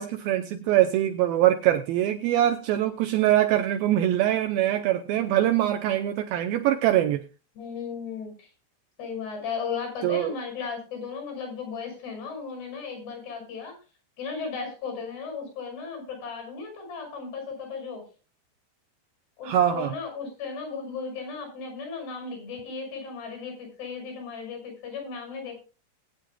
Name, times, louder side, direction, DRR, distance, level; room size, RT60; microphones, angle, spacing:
voice 1, 0.0-7.3 10.0-10.3 19.4-19.9, right 12 dB, 75° right, 7 dB, 2.3 m, -23 dB
voice 2, 7.6-8.5 9.0-13.8 14.2-18.0 19.4-25.6, left 5 dB, 75° left, 4 dB, 7.6 m, -35 dB
20.5 x 9.5 x 2.3 m, 0.33 s
omnidirectional pair, 4.8 m